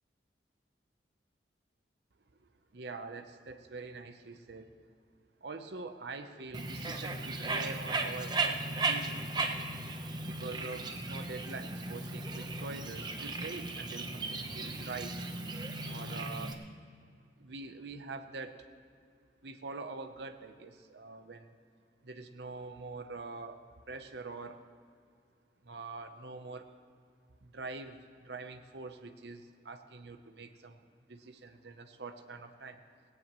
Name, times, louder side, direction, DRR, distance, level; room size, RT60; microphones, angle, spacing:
voice 1, 2.7-4.7 5.4-9.2 10.2-15.2 15.8-16.6 17.4-18.6 19.4-21.5 22.0-23.6 23.9-24.6 25.6-26.7 27.4-30.8 31.1-32.8, right 3 dB, 65° right, 7 dB, 0.7 m, -44 dB
Bird, 6.5-16.5, right 3 dB, 25° right, 0.8 m, -36 dB
18.0 x 17.5 x 3.1 m, 2.3 s
head